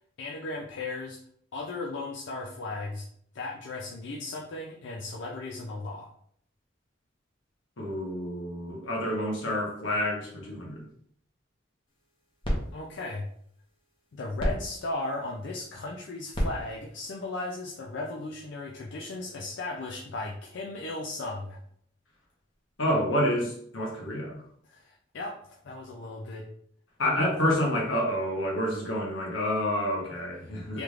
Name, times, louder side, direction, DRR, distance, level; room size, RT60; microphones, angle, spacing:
voice 1, 0.2-1.2 1.5-3.1 3.3-6.1 12.7-13.3 14.1-21.6 24.6-26.5 30.4-30.8, left 2 dB, 65° left, -1 dB, 0.4 m, -36 dB
voice 2, 7.8-10.8 22.8-24.4 27.0-30.8, equal, 80° left, -2 dB, 1.1 m, -28 dB
sound 1, 11.9-18.3, equal, 25° left, 0.9 m, -36 dB
3.4 x 3.1 x 2.4 m, 0.65 s
head